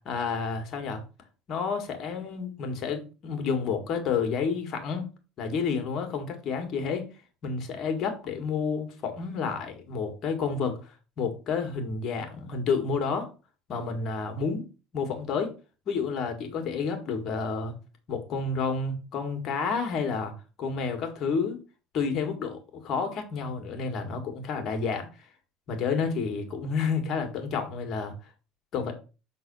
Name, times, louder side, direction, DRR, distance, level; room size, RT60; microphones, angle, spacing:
voice 1, 0.1-1.0 1.5-5.1 5.4-7.1 7.4-10.8 11.2-13.3 13.7-14.6 14.9-15.5 15.9-17.8 18.1-20.3 20.6-21.6 21.9-25.1 25.7-28.1 28.7-28.9, left 5 dB, 45° left, 1.9 m, -30 dB
6.5 x 4.0 x 5.4 m
cardioid pair, 130°, 0 cm